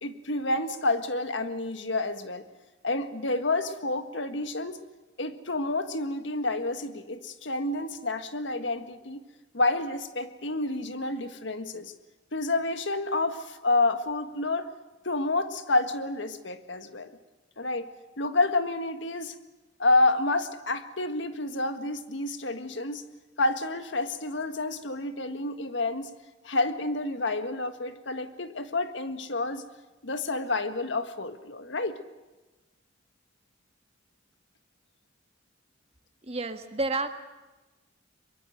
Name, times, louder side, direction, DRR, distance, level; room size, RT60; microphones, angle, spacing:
voice 1, 0.0-2.4 2.8-4.8 5.2-9.2 9.5-11.9 12.3-14.7 15.0-17.1 17.6-17.9 18.2-19.4 19.8-23.0 23.4-26.1 26.4-29.6 30.0-32.0, left 2 dB, 70° left, 9 dB, 1.7 m, -29 dB
voice 2, 36.2-37.1, right 2 dB, 35° right, 8 dB, 1.5 m, -30 dB
23.5 x 22.5 x 7.9 m, 1.1 s
head